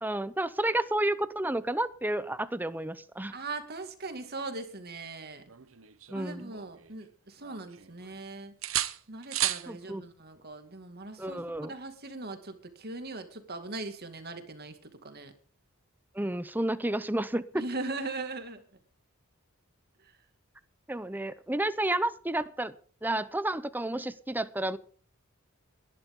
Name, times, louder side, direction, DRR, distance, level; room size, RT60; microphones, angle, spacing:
voice 1, 0.0-3.3 6.1-6.5 9.7-10.0 11.2-11.7 16.1-17.6 20.9-22.7 23.0-24.8, right 1 dB, 10° right, 14 dB, 0.8 m, -31 dB
voice 2, 3.3-5.4 6.1-8.5 9.1-15.3 17.5-18.6 20.0-20.1, right 3 dB, 50° right, 7 dB, 2.2 m, -40 dB
sound 1, 5.5-7.0 7.4-8.2 8.6-9.7 11.5-11.8, right 13 dB, 65° right, 1.0 m, -34 dB
20.5 x 11.0 x 3.8 m, 0.44 s
head